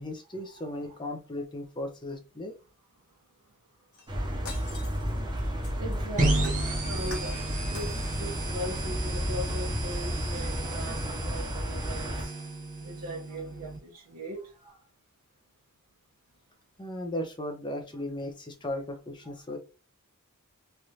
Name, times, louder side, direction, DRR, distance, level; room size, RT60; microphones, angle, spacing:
voice 1, 0.0-2.5 16.8-19.6, left 1 dB, 20° left, 0.6 m, -36 dB
Shatter, 3.9-6.0 6.4-7.4 7.7-8.5 8.9-9.0, left 3 dB, 75° left, 1.1 m, -46 dB
sound 1, 4.1-12.2, equal, 20° right, 0.7 m, -32 dB
voice 2, 5.8-7.4 7.7-12.3 12.8-14.8, equal, 75° right, 0.9 m, -39 dB
sound 2, 6.2-13.8, right 2 dB, 35° right, 1.1 m, -34 dB
3.3 x 2.5 x 2.8 m
head